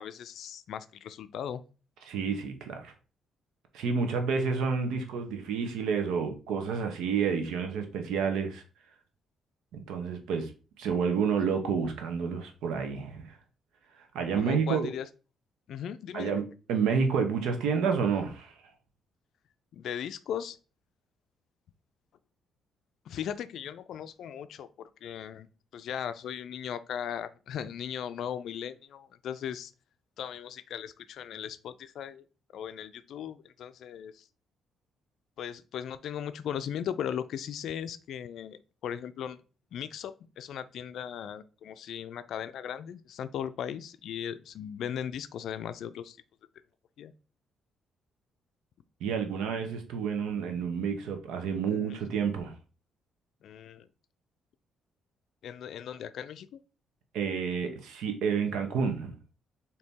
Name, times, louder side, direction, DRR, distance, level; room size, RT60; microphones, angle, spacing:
voice 1, 0.0-1.6 14.4-15.1 15.7-16.4 19.7-20.6 23.1-25.5 25.7-29.7 30.2-32.2 32.5-34.3 35.4-39.4 39.7-46.2 47.0-47.1 51.7-52.0 53.4-53.9 55.4-56.6, left 9 dB, 70° left, 13 dB, 0.4 m, -38 dB
voice 2, 2.1-2.9 3.7-8.6 9.7-10.5 10.8-13.3 14.1-14.9 16.1-16.4 16.7-18.5 49.0-52.5 57.1-59.2, right 6 dB, 85° right, 5 dB, 0.8 m, -29 dB
4.0 x 2.8 x 3.6 m, 0.34 s
cardioid pair, 90°, 0 cm